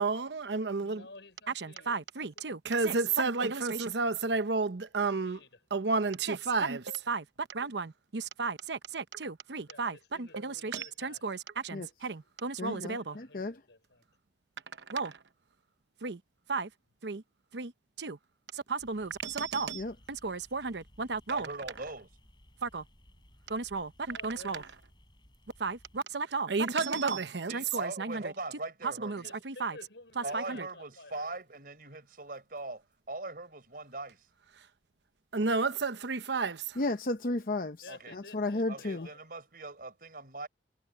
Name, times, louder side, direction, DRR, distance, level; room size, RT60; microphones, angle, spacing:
voice 1, 0.0-1.1 1.5-5.4 5.7-13.2 14.9-15.2 16.0-16.2 16.5-16.7 17.0-17.2 17.5-17.7 18.0-18.2 18.5-21.5 22.6-22.8 23.5-24.7 25.6-28.3 28.8-29.8 30.2-30.7 35.3-36.8, right 4 dB, 80° right, 0.9 m, -32 dB
voice 2, 0.8-2.0 2.4-2.5 2.9-3.0 5.0-5.5 9.7-11.2 12.7-14.1 24.1-24.7 29.1-31.4 37.8-39.2, left 3 dB, 85° left, 6.2 m, -53 dB
voice 3, 12.6-13.6 19.7-19.9 36.8-39.1, left 2 dB, 50° left, 0.8 m, -33 dB
sound 1, 18.8-26.0, equal, 25° left, 7.6 m, -60 dB
voice 4, 21.3-22.1 27.5-29.3 30.2-34.2 37.9-38.2 38.7-40.5, right 2 dB, 55° right, 4.8 m, -41 dB
head